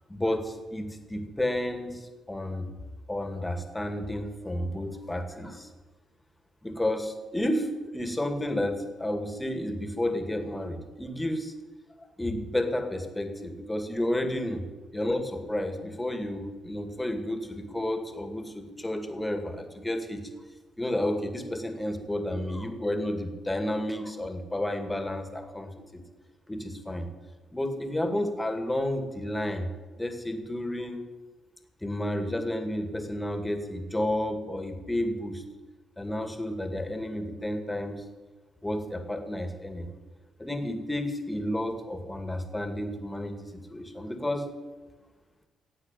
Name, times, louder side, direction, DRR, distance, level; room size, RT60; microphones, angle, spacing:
voice 1, 0.1-2.7 3.1-5.7 6.6-11.5 12.0-14.6 14.9-20.2 20.8-26.0 26.5-27.1 27.5-29.7 30.0-31.0 31.8-35.4 36.0-38.0 38.6-39.9 40.4-44.5, left 1 dB, 10° left, 6 dB, 2.3 m, -31 dB
16.0 x 8.4 x 9.1 m, 1.3 s
cardioid pair, 90°, 0 cm